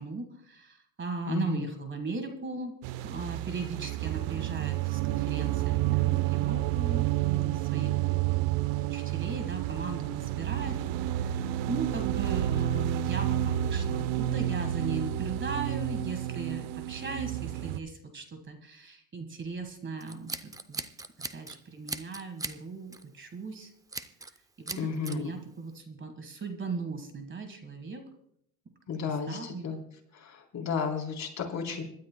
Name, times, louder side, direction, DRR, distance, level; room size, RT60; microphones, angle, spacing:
voice 1, 0.0-8.5 8.8-10.8 11.0-20.8 21.2-23.7 24.6-28.0 29.0-29.7, right 4 dB, 25° right, 6 dB, 1.6 m, -38 dB
voice 2, 1.3-1.7 24.8-25.3 28.9-29.8 30.1-31.8, left 6 dB, 40° left, 2 dB, 3.5 m, -33 dB
sound 1, 2.8-17.8, right 13 dB, 75° right, 0.8 m, -30 dB
Scissors, 20.0-21.6 21.9-22.6 22.9-23.1 23.9-24.4 24.7-25.2, right 3 dB, 10° right, 0.5 m, -38 dB
26.0 x 12.5 x 2.2 m, 0.70 s
cardioid pair, 120°, 45 cm